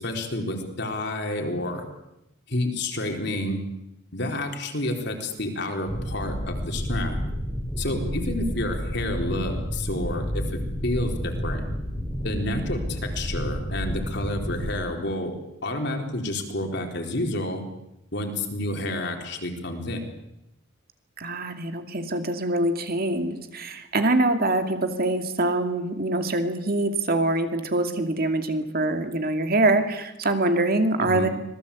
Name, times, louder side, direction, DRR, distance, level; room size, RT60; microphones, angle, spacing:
voice 1, 0.0-1.8 2.5-3.6 4.1-7.2 7.8-11.7 12.2-15.4 15.6-17.7 18.1-20.1 31.0-31.3, left 1 dB, 55° left, 4 dB, 4.1 m, -29 dB
sound 1, 5.9-14.7, equal, 10° left, 3.4 m, -30 dB
voice 2, 7.9-8.5 21.2-31.3, right 2 dB, 50° right, 7 dB, 2.5 m, -24 dB
25.5 x 19.5 x 8.5 m, 0.89 s
head